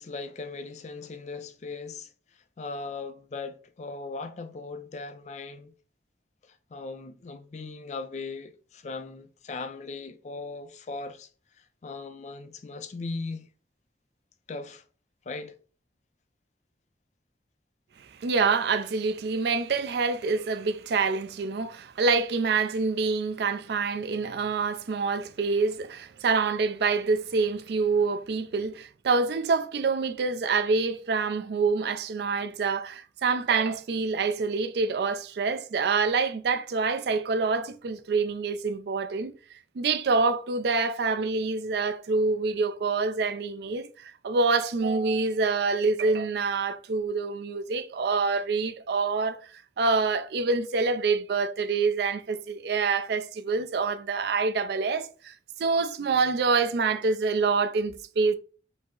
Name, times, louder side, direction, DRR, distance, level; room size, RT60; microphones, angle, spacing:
voice 1, 0.0-5.7 6.4-11.3 11.6-13.5 14.5-14.8 15.3-15.5, left 3 dB, 40° left, 0.4 m, -38 dB
voice 2, 18.2-39.3 39.8-55.3 55.6-58.4, right 4 dB, 60° right, 0.4 m, -26 dB
5.1 x 2.0 x 3.7 m
head